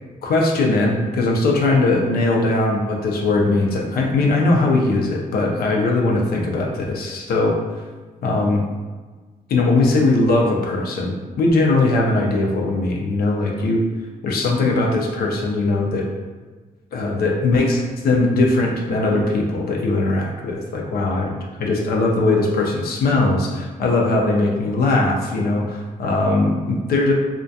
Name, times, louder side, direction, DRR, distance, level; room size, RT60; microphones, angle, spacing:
voice 1, 0.2-7.6 8.2-8.6 9.5-13.8 14.2-16.1 16.9-21.3 21.6-27.1, left 2 dB, 80° left, 0 dB, 0.4 m, -20 dB
2.3 x 2.1 x 2.6 m, 1.3 s
cardioid pair, 95°, 15 cm